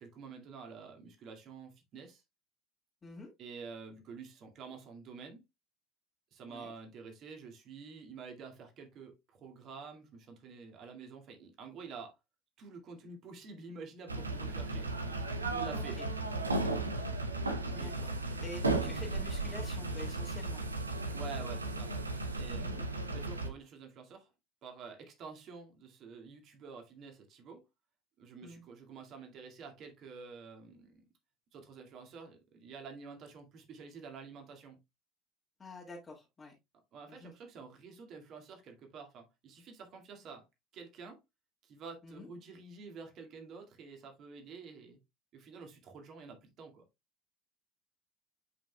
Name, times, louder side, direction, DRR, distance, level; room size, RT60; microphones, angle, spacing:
voice 1, 0.0-2.2 3.4-5.4 6.3-12.1 12.6-14.9 15.5-16.0 17.8-18.4 21.1-21.9 22.4-22.8 23.1-24.3 24.6-27.6 28.2-31.0 31.5-34.8 36.9-40.5 40.7-41.2 41.6-45.0 45.3-46.8, right 5 dB, 40° right, 2.1 m, -49 dB
sound 1, 14.1-23.5, right 2 dB, 80° right, 0.9 m, -35 dB
voice 2, 15.7-16.1 17.7-20.6 22.6-22.8 28.4-28.6 35.6-36.5 37.1-37.3 42.0-42.3, left 3 dB, 20° left, 1.7 m, -47 dB
8.8 x 5.5 x 2.3 m
figure-of-eight pair, 70°, 0 cm